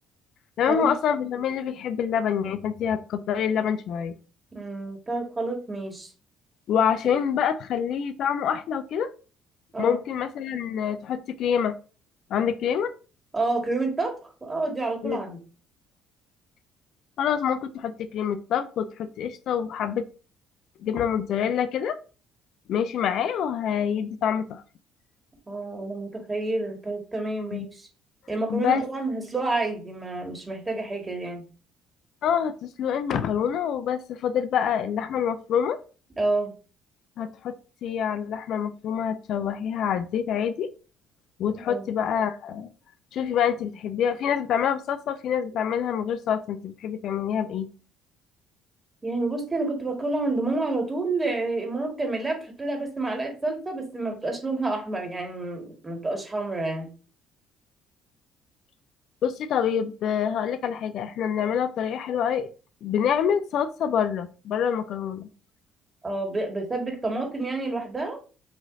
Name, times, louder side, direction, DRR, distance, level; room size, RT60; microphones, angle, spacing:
voice 1, 0.6-4.1 6.7-9.1 9.8-11.7 12.3-12.9 15.0-15.2 17.2-20.1 20.8-21.9 22.7-24.6 27.5-27.7 28.5-28.8 32.2-35.8 37.2-37.5 37.8-40.7 41.4-42.7 43.1-47.7 59.2-62.5 62.8-65.3, left 8 dB, 65° left, 11 dB, 0.4 m, -26 dB
voice 2, 4.5-6.1 9.7-10.0 13.3-15.4 25.5-27.9 28.3-31.4 36.2-36.5 41.7-41.8 49.0-56.9 66.0-68.2, right 2 dB, 25° right, 2 dB, 1.9 m, -29 dB
6.2 x 3.1 x 2.7 m, 0.36 s
supercardioid pair, 65°, 0 cm